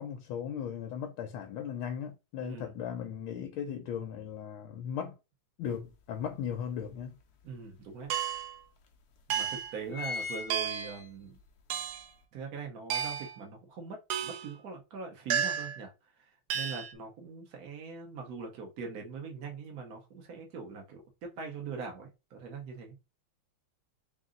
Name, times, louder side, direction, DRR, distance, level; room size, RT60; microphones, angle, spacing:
voice 1, 0.0-5.2 5.6-7.1, left 8 dB, 80° left, 1.4 m, -37 dB
voice 2, 2.4-2.8 7.4-8.1 9.3-11.4 12.3-15.9 16.2-23.0, right 5 dB, 50° right, 1.5 m, -42 dB
sound 1, 5.7-5.8 6.3-7.4 8.1-8.2 8.4-8.5 9.2-9.4 9.7-11.5 11.9-12.0, left 4 dB, 60° left, 1.0 m, -40 dB
sound 2, 8.1-8.6 9.3-9.7 10.5-11.0 11.7-12.1 12.9-13.4 14.1-14.5 15.3-15.8 16.5-16.9, right 8 dB, 85° right, 1.5 m, -32 dB
4.0 x 2.6 x 3.7 m
omnidirectional pair, 2.3 m